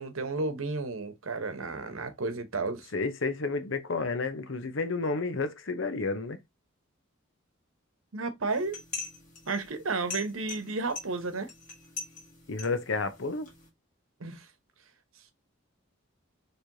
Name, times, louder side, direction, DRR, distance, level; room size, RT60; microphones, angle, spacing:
voice 1, 0.0-2.9 8.1-8.8 9.5-11.5 14.2-14.4, right 3 dB, 90° right, 0.9 m, -32 dB
voice 2, 2.9-6.4 12.5-13.5, left 3 dB, 70° left, 0.8 m, -31 dB
sound 1, 8.5-13.7, left 4 dB, 40° left, 1.5 m, -43 dB
4.6 x 3.2 x 2.6 m
head